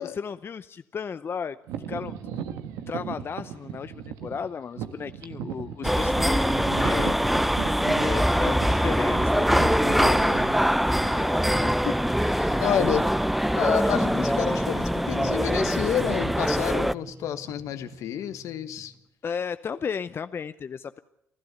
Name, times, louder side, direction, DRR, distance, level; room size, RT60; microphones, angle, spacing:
voice 1, 0.0-1.6 1.9-2.5 2.9-7.6 8.0-10.4 11.0-11.8 13.8-13.9 14.2-14.3 19.2-21.0, left 6 dB, 45° left, 12 dB, 0.7 m, -34 dB
sound 1, 1.7-11.4 12.1-12.2 12.8-13.1 13.4-13.6 14.2-14.8 15.1-18.5, right 9 dB, 85° right, 1.4 m, -38 dB
sound 2, 5.8-16.9, equal, ahead, 0.7 m, -23 dB
voice 2, 11.6-11.9 12.2-13.0 13.6-18.9, left 10 dB, 75° left, 10 dB, 1.4 m, -29 dB
sound 3, 13.9-18.9, left 2 dB, 15° left, 1.9 m, -38 dB
30.0 x 12.0 x 7.9 m, 0.82 s
supercardioid pair, 65°, 6 cm